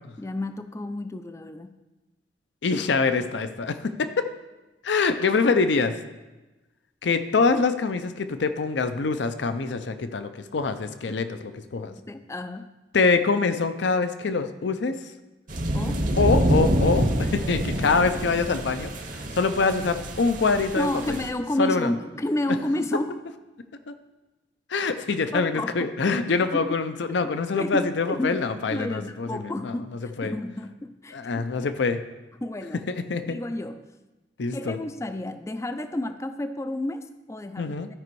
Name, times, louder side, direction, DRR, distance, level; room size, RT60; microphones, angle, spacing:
voice 1, 0.2-1.7 11.8-12.7 15.7-16.1 20.8-23.2 25.3-25.9 26.6-26.7 27.1-27.2 27.5-28.4 28.7-31.5 32.4-32.9 33.3-33.8 34.5-38.0, left 1 dB, 15° left, 10 dB, 0.3 m, -31 dB
voice 2, 2.6-4.3 4.8-6.0 7.0-11.9 12.9-15.0 16.2-21.2 21.6-21.9 23.9-24.0 24.7-29.7 30.2-30.3 31.1-32.0 32.9-33.4 34.4-34.8 37.6-37.9, left 4 dB, 70° left, 10 dB, 0.5 m, -25 dB
sound 1, 15.5-21.3, right 1 dB, 45° right, 0.8 m, -26 dB
12.5 x 5.1 x 4.6 m, 1.1 s
head